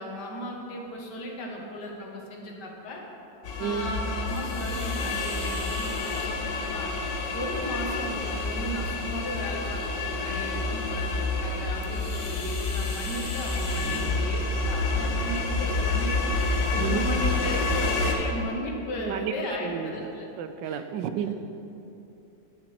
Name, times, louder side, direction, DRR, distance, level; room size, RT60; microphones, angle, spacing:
voice 1, 0.0-3.0 3.6-6.9 7.3-20.3 20.6-20.8, equal, 70° left, 0 dB, 2.0 m, -36 dB
sound 1, 3.4-18.1, left 3 dB, 90° left, 1.7 m, -28 dB
voice 2, 3.6-3.9 13.8-14.3 16.8-17.0 19.0-19.3 19.6-20.1 20.4-21.3, right 9 dB, 85° right, 9 dB, 1.3 m, -32 dB
Vape Sound, 4.3-18.4, left 2 dB, 45° left, 0.4 m, -44 dB
11.5 x 6.6 x 5.8 m, 2.9 s
omnidirectional pair, 1.9 m